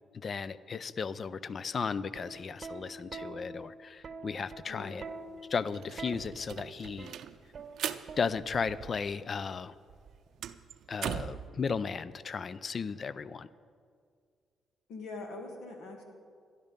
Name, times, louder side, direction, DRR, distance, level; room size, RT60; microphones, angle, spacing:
voice 1, 0.1-5.0 5.5-7.1 8.2-9.7 10.9-13.5, left 5 dB, 45° left, 17 dB, 0.4 m, -35 dB
Plucked string instrument, 2.2-9.2 10.3-10.6, right 4 dB, 45° right, 0.8 m, -46 dB
voice 2, 4.7-5.1 14.9-16.0, left 3 dB, 85° left, 2 dB, 2.0 m, -43 dB
sound 1, 5.0-5.1 5.4-9.3 9.6-11.5, right 9 dB, 70° right, 0.5 m, -41 dB
12.5 x 11.0 x 5.2 m, 2.1 s
cardioid pair, 90°, 0 cm